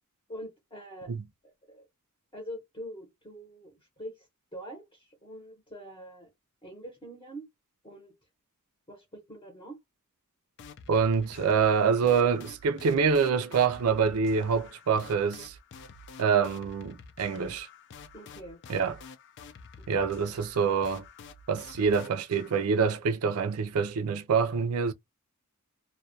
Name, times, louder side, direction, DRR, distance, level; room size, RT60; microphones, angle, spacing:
voice 1, 0.3-1.1 1.4-1.9 2.3-6.3 6.6-7.5 7.8-8.1 8.9-9.8 18.1-18.9 19.8-20.1, equal, 20° left, 0.8 m, -44 dB
sound 1, 10.6-22.7, left 4 dB, 55° left, 0.4 m, -49 dB
voice 2, 10.9-15.5 16.2-17.7 18.7-19.0 19.9-21.0 21.5-24.9, right 6 dB, 70° right, 0.4 m, -26 dB
2.2 x 2.1 x 2.6 m
head